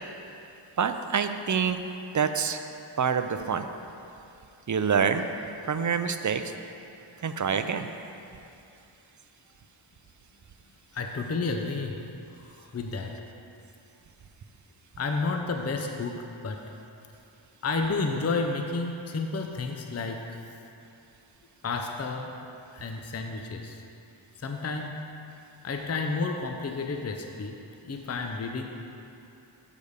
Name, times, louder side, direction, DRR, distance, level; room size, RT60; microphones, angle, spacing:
voice 1, 0.8-1.8 2.1-2.6 3.0-3.7 4.7-5.3 5.7-6.4 7.2-7.9, right 6 dB, 40° right, 9 dB, 0.5 m, -26 dB
voice 2, 10.9-12.0 12.4-13.2 15.0-16.7 17.6-20.4 21.6-22.4 22.7-23.8 24.4-25.1 25.6-27.6 27.8-28.6, left 3 dB, 30° left, 4 dB, 0.6 m, -31 dB
6.8 x 5.1 x 6.5 m, 2.7 s
wide cardioid pair, 45°, 49 cm